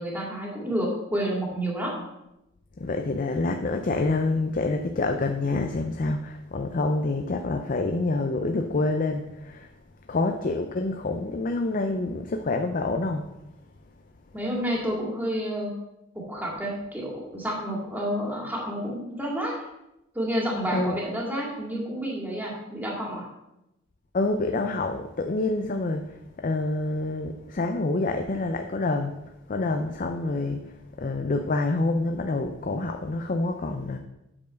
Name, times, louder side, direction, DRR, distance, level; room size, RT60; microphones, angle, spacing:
voice 1, 0.0-1.9 14.3-15.7 16.1-19.5 20.1-23.3, equal, 10° right, -3 dB, 2.1 m, -29 dB
voice 2, 2.8-9.7 10.1-13.2 20.7-21.0 24.1-26.0 26.4-29.1 29.5-30.6 31.0-34.0, left 2 dB, 45° left, 5 dB, 0.5 m, -27 dB
8.6 x 4.6 x 6.3 m, 0.90 s
head